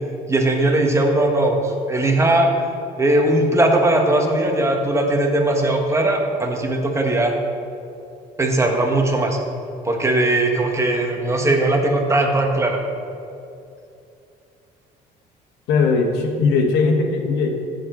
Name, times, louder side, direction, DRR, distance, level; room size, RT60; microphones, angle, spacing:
voice 1, 0.3-2.5 3.0-7.3 8.4-9.4 9.8-12.8, right 1 dB, 15° right, 2 dB, 1.5 m, -19 dB
voice 2, 15.7-17.5, left 4 dB, 90° left, 3 dB, 1.4 m, -19 dB
15.0 x 6.9 x 3.9 m, 2.6 s
cardioid pair, 110°, 17 cm